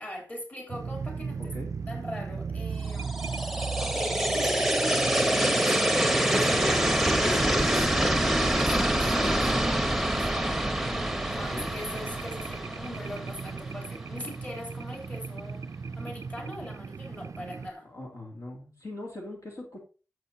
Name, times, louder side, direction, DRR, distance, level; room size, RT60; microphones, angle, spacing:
voice 1, 0.0-1.5 1.9-3.1 3.8-10.9 11.4-15.7 15.9-17.9, left 1 dB, 25° left, 3.4 m, -41 dB
sound 1, 0.7-17.7, right 5 dB, 60° right, 0.4 m, -37 dB
voice 2, 1.4-1.7 10.8-11.7 17.8-19.8, left 1 dB, 65° left, 2.6 m, -42 dB
sound 2, 2.9-13.9, right 1 dB, 5° right, 1.0 m, -26 dB
12.5 x 7.8 x 2.8 m
wide cardioid pair, 85°, 6 cm